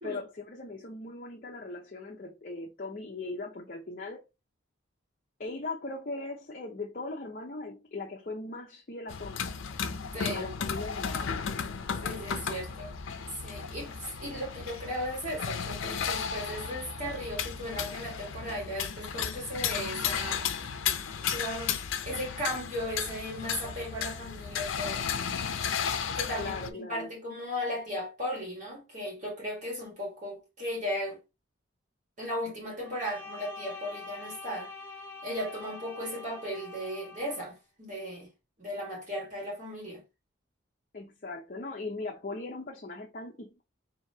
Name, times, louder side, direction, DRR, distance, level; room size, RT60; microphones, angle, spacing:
voice 1, 0.0-4.3 5.4-9.5 10.3-11.3 26.4-27.1 40.9-43.6, left 3 dB, 45° left, 0.7 m, -39 dB
sound 1, 9.1-26.7, left 7 dB, 80° left, 0.5 m, -34 dB
voice 2, 10.1-10.5 12.0-13.0 13.3-20.8 21.3-21.8 22.0-25.0 26.1-31.2 32.2-34.7 35.2-38.3 38.6-40.0, equal, 40° right, 1.6 m, -36 dB
Bowed string instrument, 32.8-37.5, left 3 dB, 10° left, 0.8 m, -45 dB
5.0 x 2.8 x 2.8 m
head